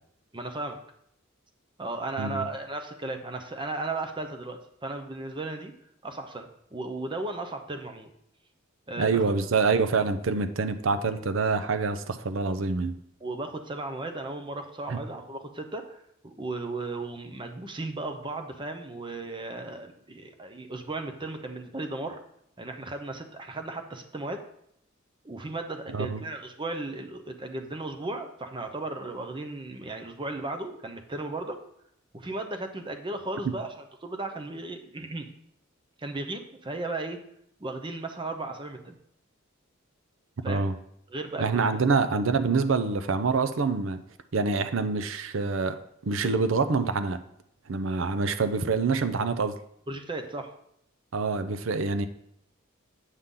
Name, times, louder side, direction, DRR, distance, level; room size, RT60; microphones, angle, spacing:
voice 1, 0.3-0.8 1.8-5.7 6.0-8.1 8.9-9.3 13.2-22.2 22.6-24.4 25.2-31.6 32.1-35.3 36.0-37.2 37.6-39.0 40.4-40.6 41.1-41.8 49.9-50.5, right 2 dB, 25° right, 6 dB, 0.7 m, -35 dB
voice 2, 9.0-12.9 14.9-15.0 25.9-26.2 33.4-33.5 40.5-40.7 41.4-44.0 44.3-45.8 46.0-47.2 47.7-49.5 51.1-52.1, right 4 dB, 70° right, 10 dB, 0.6 m, -26 dB
8.1 x 5.7 x 3.8 m, 0.73 s
head